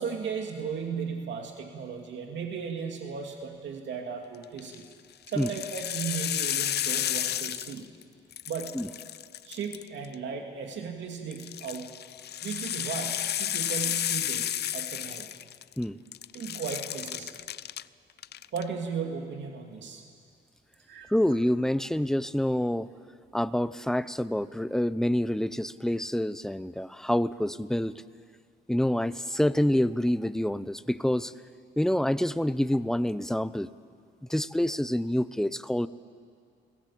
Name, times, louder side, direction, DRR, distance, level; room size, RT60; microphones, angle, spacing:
voice 1, 0.0-4.9 5.3-7.8 8.5-8.8 9.4-11.9 12.4-15.3 16.3-17.3 18.5-20.0 20.9-21.1, right 6 dB, 65° right, 3 dB, 2.5 m, -36 dB
sound 1, 4.4-4.8 5.3-8.0 8.3-10.1 11.3-15.8 16.1-17.8 18.2-18.6, left 11 dB, 55° left, 0.6 m, -32 dB
voice 2, 21.1-22.9 23.3-27.9 28.7-31.3 31.8-33.7 34.3-35.9, left 1 dB, ahead, 14 dB, 0.8 m, -27 dB
29.5 x 19.5 x 8.6 m, 2.2 s
cardioid pair, 90°, 20 cm